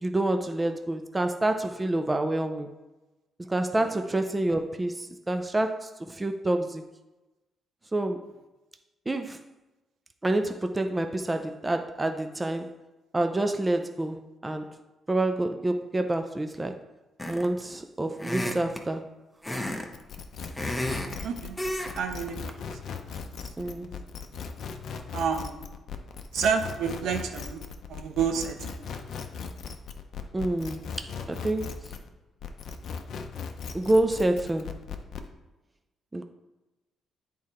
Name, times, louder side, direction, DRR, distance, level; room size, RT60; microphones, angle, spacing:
voice 1, 0.0-2.7 3.5-6.8 7.9-8.2 9.1-9.4 10.2-12.7 13.1-14.7 15.1-16.8 17.3-19.1 23.6-23.9 30.3-31.7 33.7-34.8 36.1-36.2, right 1 dB, 20° right, 6 dB, 0.5 m, -28 dB
sound 1, 17.2-17.6 18.2-18.8 19.4-19.9 20.2-21.2 21.6-22.0 22.3-22.5, left 1 dB, 10° left, 0.8 m, -32 dB
sound 2, 19.9-32.1 32.4-35.3, left 6 dB, 65° left, 0.6 m, -38 dB
voice 2, 21.2-21.6 21.9-22.5 23.6-23.7 25.1-25.6 26.3-27.6 27.9-28.7, right 6 dB, 75° right, 5 dB, 0.8 m, -29 dB
8.6 x 3.7 x 4.3 m, 1.1 s
cardioid pair, 90°, 0 cm